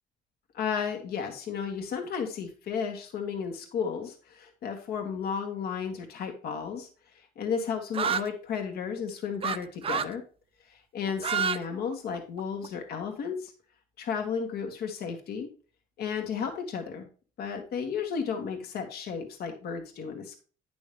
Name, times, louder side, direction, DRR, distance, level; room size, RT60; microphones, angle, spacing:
voice 1, 0.5-6.9 7.4-10.2 10.7-13.5 14.0-15.5 16.0-17.1 17.4-20.4, left 6 dB, 70° left, 4 dB, 1.9 m, -33 dB
sound 1, 7.9-8.3 9.4-9.6 9.8-10.1 11.1-11.6 11.9-12.7, right 7 dB, 35° right, 0.6 m, -28 dB
10.0 x 6.1 x 3.4 m, 0.38 s
cardioid pair, 110°, 17 cm